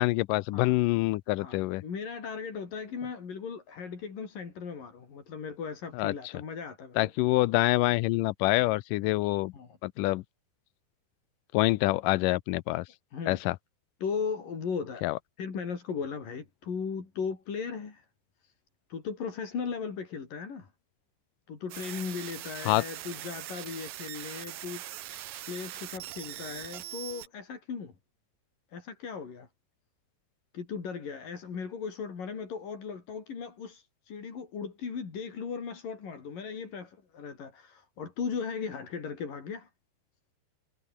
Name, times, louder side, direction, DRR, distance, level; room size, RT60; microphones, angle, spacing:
voice 1, 0.0-1.8 5.9-6.1 7.0-9.5 9.8-10.2 11.5-12.9 13.3-13.6 15.0-15.2 22.7-22.8, left 19 dB, 85° left, 1.9 m, -26 dB
voice 2, 1.4-7.1 9.5-9.8 13.1-13.4 14.0-15.0 15.4-18.1 18.4-18.5 18.9-20.7 21.5-25.1 25.5-27.9 28.7-29.5 30.5-39.7, left 6 dB, 55° left, 5.9 m, -37 dB
sound 1, 21.7-27.3, right 14 dB, 70° right, 2.6 m, -41 dB
omnidirectional pair, 4.6 m